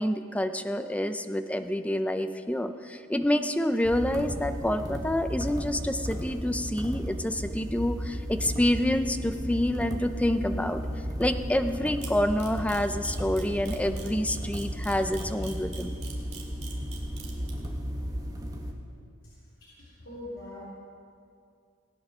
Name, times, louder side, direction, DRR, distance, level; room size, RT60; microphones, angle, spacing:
voice 1, 0.0-10.8 11.2-16.0, left 1 dB, 5° left, 9 dB, 0.5 m, -28 dB
sound 1, 3.8-18.7, equal, 20° right, 1.4 m, -35 dB
Camera, 12.0-17.5, right 7 dB, 35° right, 2.3 m, -43 dB
voice 2, 19.8-20.6, left 1 dB, 75° left, -9 dB, 3.4 m, -41 dB
18.0 x 9.3 x 6.1 m, 2.3 s
head